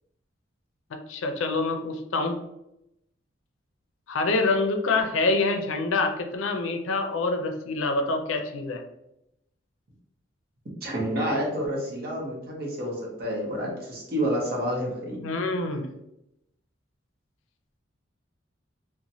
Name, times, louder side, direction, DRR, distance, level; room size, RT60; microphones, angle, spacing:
voice 1, 1.1-2.4 4.1-8.8 15.2-15.9, left 3 dB, 85° left, 5 dB, 0.4 m, -26 dB
voice 2, 10.8-15.2, equal, 50° right, -2 dB, 0.8 m, -29 dB
3.0 x 2.1 x 2.6 m, 0.84 s
head